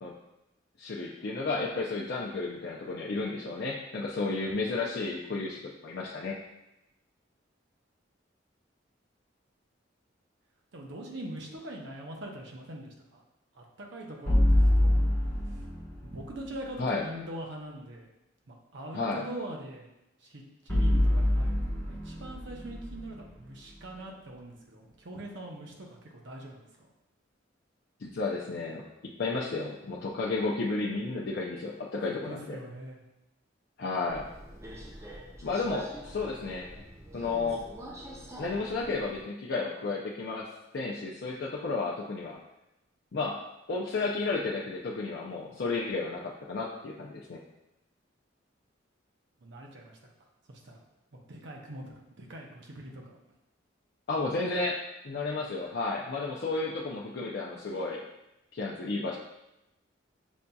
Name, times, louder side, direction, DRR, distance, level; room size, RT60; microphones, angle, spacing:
voice 1, 0.8-6.3 16.8-17.0 18.9-19.2 28.0-32.6 33.8-34.3 35.4-36.7 37.1-37.6 38.4-40.5 40.7-42.4 43.1-43.4 43.7-47.4 54.1-58.0 58.5-59.2, left 3 dB, 55° left, -3 dB, 0.4 m, -32 dB
voice 2, 10.7-13.2 13.5-14.4 14.8-15.0 16.0-18.1 18.5-19.9 20.2-26.9 32.1-33.0 49.4-50.0 50.5-50.8 51.3-51.8 52.2-53.2, right 1 dB, 65° right, 0 dB, 0.7 m, -42 dB
sound 1, 14.3-16.4 20.7-23.9, left 1 dB, 15° left, 1.1 m, -26 dB
Subway metro underground, 34.1-39.2, right 1 dB, 15° right, 0.5 m, -44 dB
7.0 x 2.6 x 2.3 m, 0.91 s
head